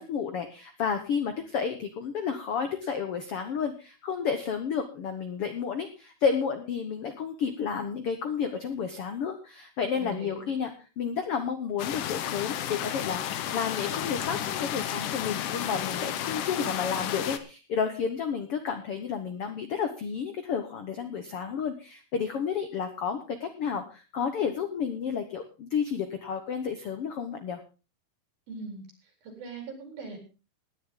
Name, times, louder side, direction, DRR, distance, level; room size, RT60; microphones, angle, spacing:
voice 1, 0.0-27.6, left 6 dB, 85° left, 7 dB, 1.2 m, -31 dB
voice 2, 10.0-10.6 28.5-28.8 29.2-30.2, right 3 dB, 70° right, 3 dB, 5.8 m, -40 dB
sound 1, 11.8-17.4, left 11 dB, 70° left, 2.2 m, -32 dB
18.5 x 10.5 x 3.8 m, 0.32 s
omnidirectional pair, 4.4 m